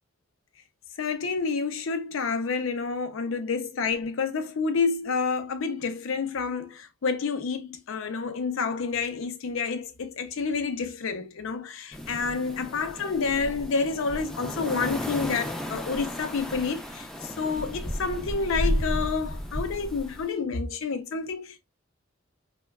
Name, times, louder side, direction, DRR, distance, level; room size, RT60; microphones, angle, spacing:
voice 1, 1.0-21.6, left 4 dB, 85° left, 0.5 m, -29 dB
sound 1, 11.9-20.3, equal, 5° left, 0.4 m, -33 dB
2.9 x 2.2 x 2.2 m
head